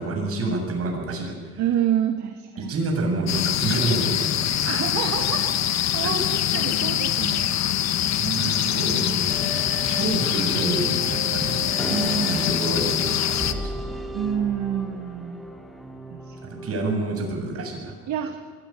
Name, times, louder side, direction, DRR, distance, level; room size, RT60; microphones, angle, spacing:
voice 1, 0.0-1.6 2.6-4.9 8.2-9.3 9.8-11.7 12.2-13.8 16.4-17.9, right 3 dB, 50° right, 2 dB, 7.3 m, -28 dB
voice 2, 1.6-2.7 4.5-7.5 8.2-8.9 11.9-12.4 14.1-15.4 16.1-16.7 18.1-18.4, right 9 dB, 65° right, 6 dB, 1.9 m, -28 dB
sound 1, 3.3-13.5, left 11 dB, 60° left, 1.4 m, -24 dB
sound 2, 9.3-17.3, right 1 dB, ahead, 2.9 m, -36 dB
22.0 x 17.0 x 9.1 m, 1.5 s
supercardioid pair, 90°, 31 cm